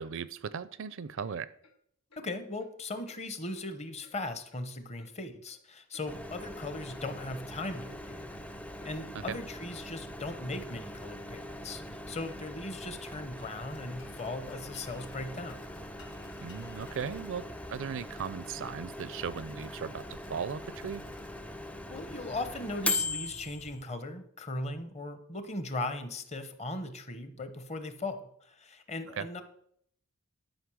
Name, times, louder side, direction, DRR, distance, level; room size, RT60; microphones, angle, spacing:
voice 1, 0.0-1.5 9.3-9.4 16.4-21.0 29.2-29.3, right 6 dB, 60° right, 17 dB, 0.4 m, -37 dB
Clock, 1.1-1.3 1.6-1.8 2.1-2.3 2.6-2.7 3.1-3.2 3.5-3.7 4.0-4.2 4.5-4.7 5.0-5.1 5.4-6.1 6.4-6.5 6.9-7.0 7.4-7.5 7.8-8.0 8.3-8.5 8.8-8.9 9.3-9.4 9.7-9.9 10.2-10.4 10.7-10.9 11.2-11.3 11.7-11.8 12.1-12.3 12.6-12.8 13.1-13.2 13.6-13.7 14.0-14.2 14.5-14.7 15.0-15.1 15.5-15.6 16.0-16.1, left 3 dB, 90° left, 1.5 m, -62 dB
voice 2, 2.2-8.3 8.8-15.6 21.9-29.4, left 2 dB, 30° left, 9 dB, 0.9 m, -38 dB
Microwave oven, 6.1-23.8, left 2 dB, 5° left, 0.5 m, -41 dB
sound 1, 13.4-21.7, left 4 dB, 55° left, 1.2 m, -59 dB
12.0 x 5.2 x 6.2 m, 0.68 s
head